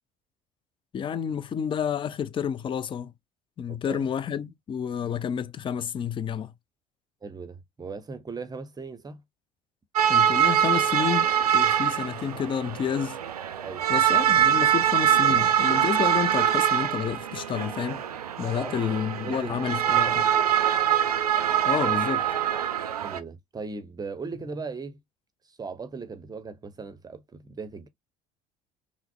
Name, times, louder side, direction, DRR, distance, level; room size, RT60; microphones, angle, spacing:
voice 1, 0.9-3.1 3.6-6.5 10.1-13.2 13.9-18.0 18.4-20.2 21.6-22.3, left 8 dB, 25° left, 0.5 m, -30 dB
voice 2, 3.7-4.1 7.2-9.2 13.6-13.8 18.5-20.5 23.0-25.0 25.4-27.9, right 4 dB, 20° right, 0.7 m, -39 dB
sound 1, 10.0-23.2, right 10 dB, 80° right, 0.5 m, -24 dB
5.8 x 2.0 x 2.3 m
figure-of-eight pair, 60°, 19 cm